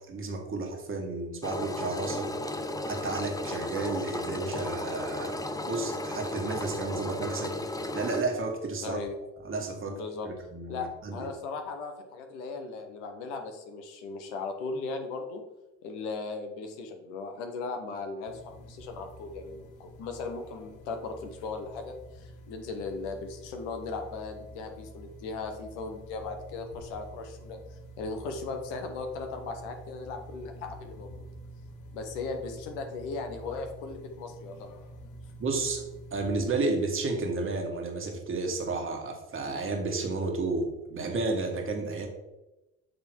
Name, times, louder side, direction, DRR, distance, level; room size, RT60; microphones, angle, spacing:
voice 1, 0.1-2.3 2.9-7.6 7.9-9.0 9.4-11.3 35.4-35.8 36.1-42.1, right 3 dB, 35° right, 2 dB, 1.7 m, -32 dB
Engine, 1.4-8.2, left 1 dB, 10° left, 0.6 m, -34 dB
voice 2, 8.8-9.2 9.9-10.3 10.7-15.4 15.8-31.3 31.9-34.7, left 4 dB, 80° left, 5 dB, 1.1 m, -37 dB
sound 1, 18.3-36.5, right 1 dB, 60° left, 1.1 m, -48 dB
7.8 x 3.6 x 4.5 m, 1.0 s
hypercardioid pair, 70°, 35 cm